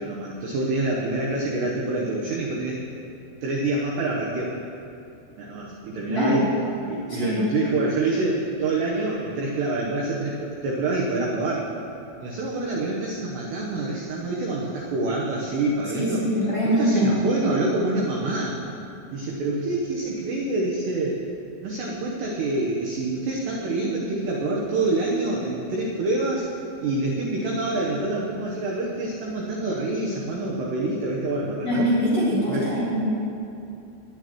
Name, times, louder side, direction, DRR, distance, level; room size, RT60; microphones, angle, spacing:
voice 1, 0.0-2.8 3.4-4.5 5.4-6.4 6.9-11.7 12.2-16.2 16.6-18.6 19.1-21.2 21.6-26.5 26.8-31.9 32.5-32.7, right 2 dB, 70° right, -3 dB, 2.8 m, -26 dB
voice 2, 6.1-6.4 7.1-7.4 15.9-17.1 31.6-33.0, equal, 35° left, -10 dB, 4.2 m, -23 dB
22.0 x 11.5 x 3.1 m, 2.7 s
omnidirectional pair, 5.9 m